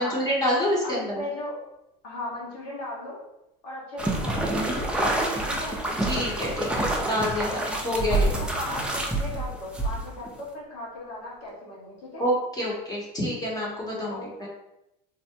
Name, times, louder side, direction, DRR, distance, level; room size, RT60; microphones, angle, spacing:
voice 1, 0.0-1.2 6.0-8.4 12.2-14.5, equal, 20° left, -5 dB, 0.8 m, -27 dB
voice 2, 0.8-1.6 2.0-3.2 3.6-4.5 5.0-5.8 8.1-12.2 14.1-14.5, left 1 dB, 85° left, -4 dB, 1.3 m, -37 dB
sound 1, 4.0-10.3, right 2 dB, 5° right, 0.4 m, -27 dB
Zipper (clothing), 8.0-10.1 10.6-10.7 10.9-11.0 11.2-11.5, right 1 dB, 50° left, 0.8 m, -47 dB
3.4 x 2.1 x 2.7 m, 0.87 s
supercardioid pair, 110°, 21 cm